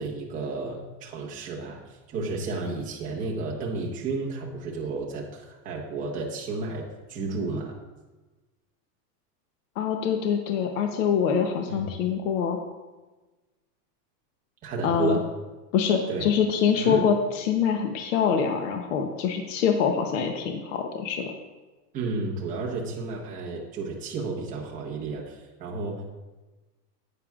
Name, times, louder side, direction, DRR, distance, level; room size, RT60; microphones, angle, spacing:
voice 1, 0.0-1.8 2.1-6.8 7.1-7.7 11.7-11.9 14.6-15.2 16.1-16.3 16.8-17.1 21.9-26.0, right 3 dB, 15° right, -3 dB, 1.0 m, -32 dB
voice 2, 9.8-12.6 14.8-15.2 15.7-21.3, left 7 dB, 50° left, 4 dB, 0.8 m, -25 dB
10.0 x 8.6 x 2.4 m, 1.2 s
supercardioid pair, 175°, 48 cm